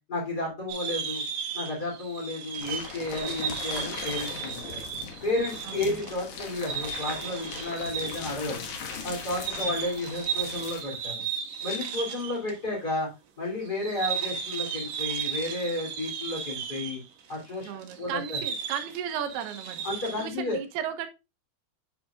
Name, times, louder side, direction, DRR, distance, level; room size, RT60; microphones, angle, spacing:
voice 1, 0.1-1.2 1.5-4.8 5.2-8.6 9.0-11.2 11.6-13.1 13.4-17.0 17.3-17.7 18.0-18.4 19.8-20.6, left 2 dB, 25° left, 3.4 m, -32 dB
sound 1, 0.7-12.6 12.8-12.9 13.6-20.3, right 6 dB, 65° right, 2.5 m, -35 dB
sound 2, 2.6-10.8, left 5 dB, 65° left, 1.5 m, -39 dB
voice 2, 5.7-6.0 9.5-9.7 17.6-19.8 20.2-21.1, right 9 dB, 90° right, 3.0 m, -35 dB
8.7 x 7.1 x 2.4 m
omnidirectional pair, 4.5 m